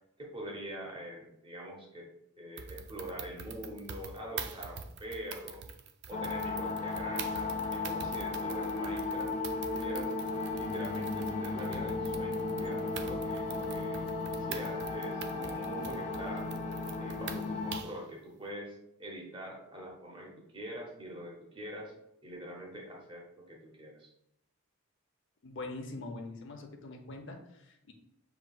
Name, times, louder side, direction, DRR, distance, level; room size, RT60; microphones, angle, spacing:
voice 1, 0.2-2.1 2.4-5.6 6.1-10.1 10.5-16.5 17.0-21.9 22.2-24.1, equal, 25° right, -1 dB, 0.9 m, -44 dB
sound 1, 2.6-18.0, right 6 dB, 50° right, 0.4 m, -45 dB
sound 2, 6.1-17.8, left 3 dB, 35° left, 0.4 m, -35 dB
voice 2, 25.4-27.9, left 2 dB, 55° left, 4 dB, 0.7 m, -43 dB
6.9 x 3.0 x 2.3 m, 0.83 s
head